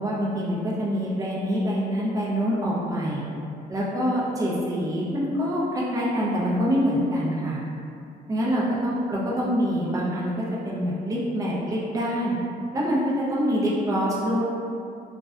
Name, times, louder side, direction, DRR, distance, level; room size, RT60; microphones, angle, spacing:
voice 1, 0.0-3.2 3.7-7.6 8.3-12.4 12.7-14.4, equal, 20° right, -6 dB, 0.5 m, -25 dB
2.5 x 2.1 x 2.3 m, 2.6 s
cardioid pair, 110°, 17 cm